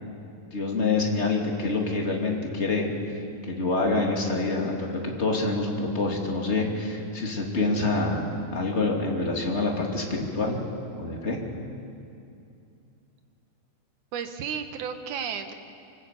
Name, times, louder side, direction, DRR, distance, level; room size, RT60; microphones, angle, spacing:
voice 1, 0.5-2.9 3.4-10.6 11.0-11.4, left 3 dB, 20° left, 0 dB, 2.6 m, -26 dB
voice 2, 14.1-15.5, right 7 dB, 70° right, 7 dB, 2.6 m, -33 dB
25.0 x 19.0 x 8.3 m, 2.6 s
omnidirectional pair, 3.8 m